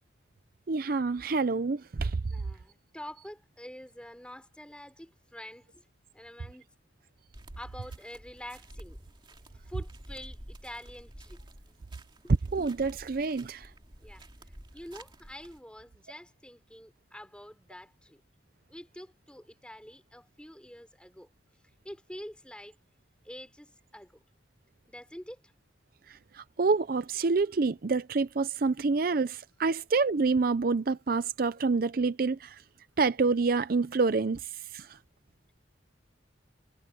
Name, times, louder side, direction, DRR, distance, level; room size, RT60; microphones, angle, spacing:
voice 1, 0.7-2.2 12.5-13.7 26.4-32.6 33.0-34.4 34.7-34.9, right 4 dB, 50° right, 0.5 m, -27 dB
voice 2, 2.3-5.8 6.1-6.7 7.6-9.0 9.7-11.4 12.2-12.3 14.0-18.2 18.7-21.3 21.8-22.8 23.2-24.2 24.9-25.4, equal, 5° left, 3.9 m, -46 dB
sound 1, 7.3-15.6, right 1 dB, 25° right, 2.6 m, -50 dB
head